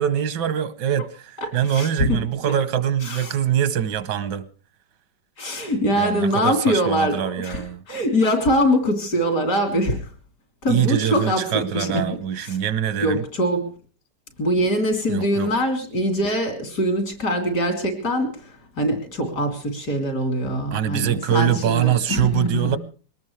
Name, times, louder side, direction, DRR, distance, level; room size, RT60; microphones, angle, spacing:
voice 1, 0.0-4.4 5.9-7.8 10.7-13.2 15.1-15.5 20.7-22.8, right 10 dB, 85° right, 1.6 m, -23 dB
voice 2, 1.4-2.2 2.5-2.6 3.0-3.3 5.4-10.0 10.6-12.0 12.4-12.6 13.0-13.7 14.4-22.8, equal, 65° left, 4.1 m, -23 dB
22.5 x 18.5 x 3.3 m
omnidirectional pair, 1.8 m